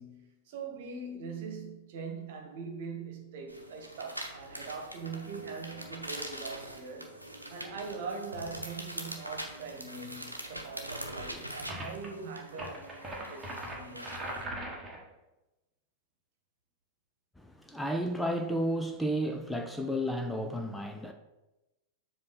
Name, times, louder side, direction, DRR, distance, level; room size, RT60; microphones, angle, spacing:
voice 1, 0.0-7.2 7.5-14.2, right 4 dB, 50° right, 1.3 m, -42 dB
sound 1, 3.5-14.4, right 1 dB, 85° right, 0.9 m, -43 dB
sound 2, 11.7-12.1 12.5-15.0, right 1 dB, 15° right, 1.6 m, -40 dB
voice 2, 17.4-21.1, equal, 5° left, 0.5 m, -32 dB
7.5 x 2.9 x 5.7 m
figure-of-eight pair, 90°, 0 cm